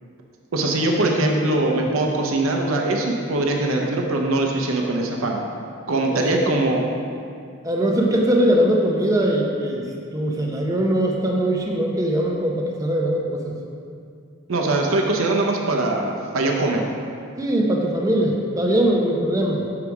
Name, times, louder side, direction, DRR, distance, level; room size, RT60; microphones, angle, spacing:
voice 1, 0.5-5.4 5.9-6.8 14.5-16.8, right 2 dB, 75° right, 1 dB, 0.7 m, -22 dB
voice 2, 7.6-9.8 10.1-13.5 17.4-19.7, right 1 dB, 15° right, -1 dB, 0.7 m, -21 dB
7.0 x 4.8 x 4.7 m, 2.3 s
head